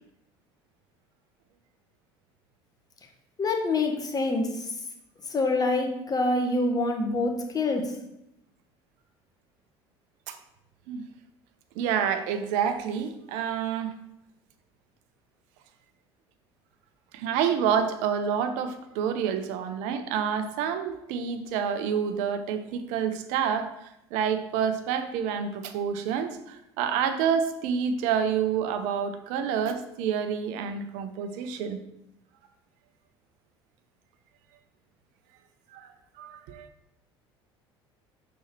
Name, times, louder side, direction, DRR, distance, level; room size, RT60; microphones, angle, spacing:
voice 1, 3.4-4.5 5.3-7.8, left 2 dB, 25° left, 3 dB, 1.2 m, -25 dB
voice 2, 11.7-13.9 17.1-31.8 35.7-35.9 36.2-36.7, right 7 dB, 65° right, 8 dB, 0.7 m, -28 dB
5.6 x 4.2 x 4.5 m, 0.83 s
hypercardioid pair, 65°, 14 cm